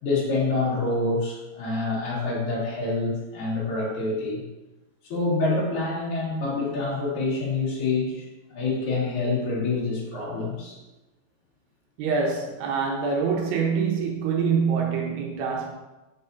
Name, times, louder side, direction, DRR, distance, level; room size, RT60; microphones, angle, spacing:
voice 1, 0.0-4.4 5.0-10.8, left 3 dB, 55° left, -7 dB, 1.5 m, -27 dB
voice 2, 12.0-15.7, right 5 dB, 80° right, -1 dB, 2.8 m, -25 dB
6.3 x 6.0 x 2.7 m, 1.0 s
omnidirectional pair, 5.1 m